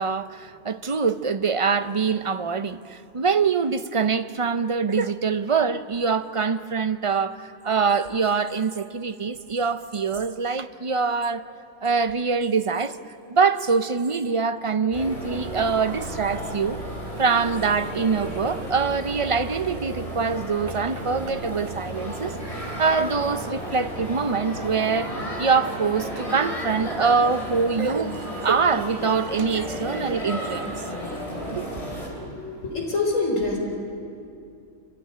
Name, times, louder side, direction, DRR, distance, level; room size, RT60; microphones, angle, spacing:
voice 1, 0.0-11.5 11.8-13.0 13.3-16.8 17.2-28.1 28.4-30.7 31.6-31.8, right 5 dB, 40° right, 0.5 m, -24 dB
sound 1, 14.9-32.1, equal, 25° left, 4.1 m, -33 dB
sound 2, 22.2-28.4, equal, 85° right, 3.6 m, -43 dB
voice 2, 32.1-33.6, left 3 dB, 70° left, 4.7 m, -26 dB
27.0 x 15.5 x 9.9 m
omnidirectional pair, 1.4 m